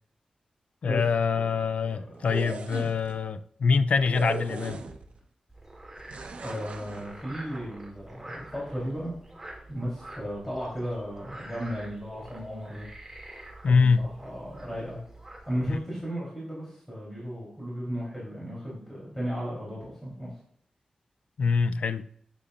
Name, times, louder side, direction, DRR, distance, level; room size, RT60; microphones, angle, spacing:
voice 1, 0.8-4.8 13.6-14.0 15.7-15.8 21.4-22.0, left 5 dB, 75° left, 0.5 m, -24 dB
voice 2, 1.9-2.2 6.3-9.1 9.7-12.9 13.6-15.0 15.5-20.3, equal, 10° left, 3.5 m, -35 dB
sound 1, 2.1-3.1 4.1-5.2 6.1-7.1, right 4 dB, 80° right, 1.0 m, -37 dB
Frog, 5.5-15.8, right 1 dB, 15° right, 2.4 m, -46 dB
12.0 x 8.5 x 2.5 m
wide cardioid pair, 160°, 2 cm